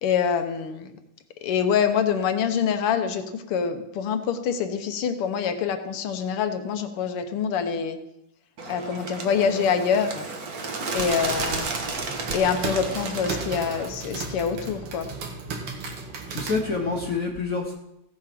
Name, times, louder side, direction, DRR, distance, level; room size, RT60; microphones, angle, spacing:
voice 1, 0.0-0.9 1.4-8.0 8.7-10.3 10.9-11.7 12.3-15.1, left 7 dB, 85° left, 7 dB, 2.0 m, -25 dB
Bird, 8.6-13.9, right 3 dB, 50° right, 1.6 m, -32 dB
sound 1, 10.9-17.2, right 4 dB, 85° right, 2.6 m, -35 dB
voice 2, 15.9-17.7, left 4 dB, 45° left, 1 dB, 1.3 m, -28 dB
15.5 x 7.4 x 5.9 m, 0.86 s
omnidirectional pair, 2.4 m